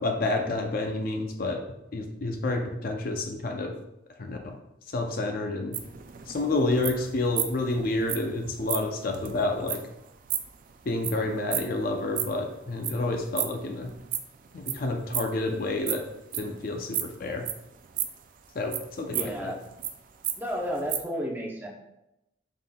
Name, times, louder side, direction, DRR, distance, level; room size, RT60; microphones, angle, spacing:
voice 1, 0.0-1.6 1.9-3.7 4.2-4.5 4.9-5.8 6.3-9.8 10.9-13.9 14.5-16.1 16.3-17.5 18.6-19.5, left 2 dB, 50° left, 3 dB, 0.4 m, -29 dB
sound 1, 5.7-12.5 12.8-14.7 15.0-16.5 16.9-18.2 18.7-19.9 20.2-20.4 20.6-21.0, right 11 dB, 45° right, 0.3 m, -32 dB
voice 2, 19.1-19.6 20.4-21.7, equal, 10° right, -3 dB, 0.7 m, -32 dB
5.5 x 3.7 x 2.2 m, 0.89 s
head